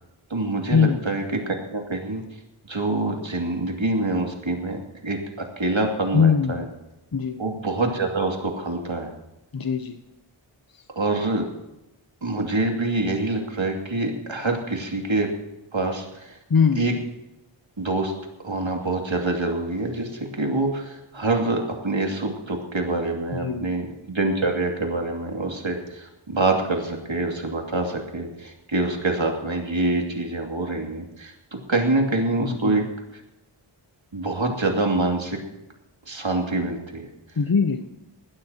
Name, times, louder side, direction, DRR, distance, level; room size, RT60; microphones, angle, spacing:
voice 1, 0.3-2.2 2.6-6.7 7.4-9.1 11.0-11.5 12.2-15.3 15.7-16.4 16.8-16.9 17.8-18.1 18.4-32.8 33.1-33.2 34.1-35.4 36.1-37.1, right 2 dB, 70° right, 1 dB, 2.5 m, -26 dB
voice 2, 6.1-6.7 7.1-7.4 9.5-10.0 16.5-16.9 23.4-23.7 32.4-32.9 37.4-37.9, left 6 dB, 45° left, 7 dB, 0.8 m, -21 dB
20.5 x 15.5 x 2.9 m, 0.93 s
wide cardioid pair, 50°, 49 cm